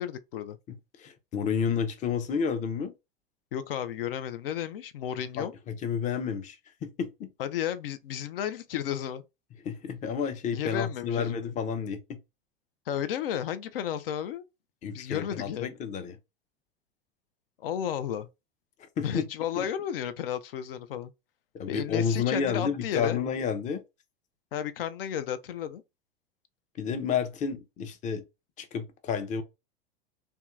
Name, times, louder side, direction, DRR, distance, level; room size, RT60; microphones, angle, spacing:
voice 1, 0.0-0.6 3.5-5.5 7.4-9.2 10.5-11.5 12.9-14.4 14.9-15.7 17.6-18.3 19.0-21.1 21.7-23.2 24.5-25.8, left 10 dB, 75° left, 0.4 m, -33 dB
voice 2, 0.7-2.9 5.4-7.3 9.6-12.2 14.8-16.2 19.0-19.2 19.6-19.7 21.5-23.8 26.8-28.2 28.6-29.4, left 6 dB, 25° left, 0.5 m, -30 dB
2.7 x 2.2 x 2.3 m
hypercardioid pair, 90°, 29 cm